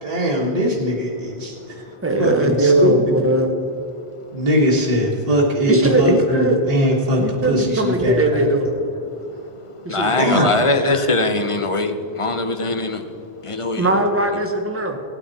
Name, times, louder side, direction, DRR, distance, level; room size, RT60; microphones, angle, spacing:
voice 1, 0.0-1.5 2.2-2.5 2.8-2.9 4.3-6.4 6.7-7.2 7.5-8.2 10.2-10.5, equal, 35° right, -4 dB, 1.8 m, -20 dB
voice 2, 2.0-3.5 5.7-6.6 7.2-8.7 9.8-10.3 13.8-15.0, right 1 dB, 10° right, 3 dB, 1.1 m, -19 dB
voice 3, 9.9-13.0 13.5-14.0, left 2 dB, 35° left, 7 dB, 0.7 m, -21 dB
17.0 x 9.1 x 4.2 m, 2.5 s
omnidirectional pair, 1.1 m